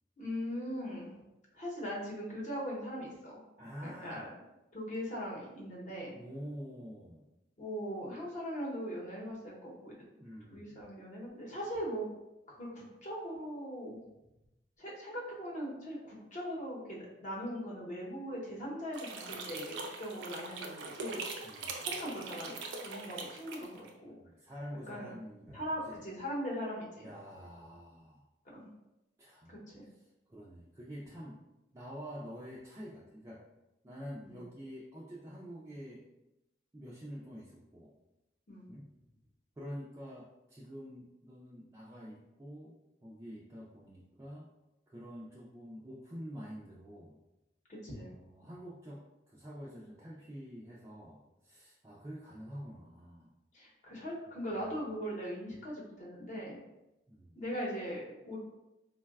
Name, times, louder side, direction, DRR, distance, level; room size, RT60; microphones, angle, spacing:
voice 1, 0.2-1.1 1.5-3.4 3.8-4.3 4.7-6.1 7.6-9.9 10.5-12.1 12.5-14.0 14.8-21.2 21.8-24.2 24.9-25.1 25.5-27.1 28.5-28.7 29.5-29.9 34.2-34.4 38.5-38.7 47.7-48.1 53.5-56.6 57.4-58.4, equal, 45° left, -4 dB, 0.8 m, -40 dB
voice 2, 3.6-4.3 6.1-7.3 10.2-10.8 21.4-22.1 24.1-26.0 27.0-28.2 29.2-29.6 30.3-31.4 31.7-33.4 33.8-36.0 36.7-38.0 38.7-38.9 39.6-42.8 43.0-44.5 44.9-47.2 48.0-53.3 54.3-54.6 57.1-57.4, equal, 15° right, -6 dB, 0.3 m, -47 dB
sound 1, 18.9-23.9, right 3 dB, 85° right, 0.4 m, -42 dB
3.8 x 2.2 x 2.3 m, 0.96 s
head